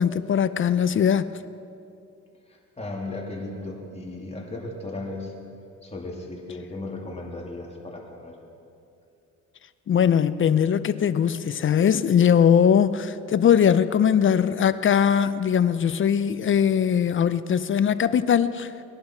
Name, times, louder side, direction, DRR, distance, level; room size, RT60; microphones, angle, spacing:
voice 1, 0.0-1.3 9.9-18.7, left 8 dB, 40° left, 0.5 m, -20 dB
voice 2, 2.5-5.3 5.8-8.4, left 2 dB, 20° left, 2.7 m, -36 dB
21.0 x 11.5 x 4.4 m
cardioid pair, 90°, 30 cm